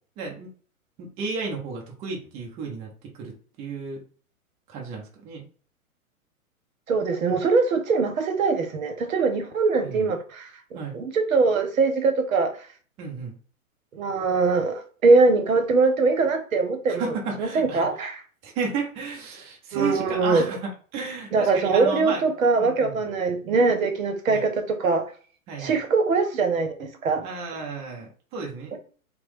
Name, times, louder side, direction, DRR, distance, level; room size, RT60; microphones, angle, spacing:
voice 1, 0.2-0.5 1.0-2.9 3.2-4.0 4.7-5.4 9.8-10.1 10.7-11.0 13.0-13.4 16.9-17.9 18.4-22.3 22.6-23.0 24.3-24.4 25.5-25.7 27.2-28.7, right 4 dB, 15° right, 0.4 m, -33 dB
voice 2, 6.9-10.5 10.9-12.5 13.9-18.2 19.7-20.5 21.3-25.0 25.6-27.3 28.7-28.8, right 4 dB, 70° right, 0.8 m, -22 dB
2.9 x 2.1 x 3.0 m
figure-of-eight pair, 115°, 43 cm